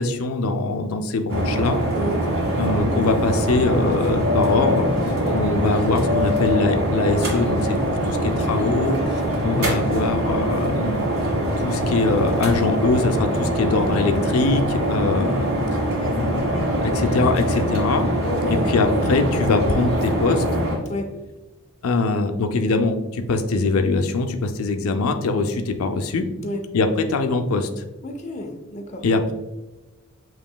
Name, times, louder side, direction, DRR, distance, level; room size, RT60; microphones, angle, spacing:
voice 1, 0.0-1.8 2.6-4.9 5.3-9.0 9.4-11.0 11.6-15.5 16.1-18.1 18.5-20.4 21.8-26.3 26.7-27.7 29.0-29.3, left 3 dB, 85° left, 6 dB, 0.5 m, -22 dB
sound 1, 1.3-20.8, equal, 80° right, 1.4 m, -23 dB
voice 2, 5.2-5.5 18.2-18.7 20.9-21.1 26.4-26.6 28.0-29.0, left 1 dB, 35° left, 2 dB, 0.5 m, -30 dB
7.2 x 3.0 x 2.2 m, 1.1 s
head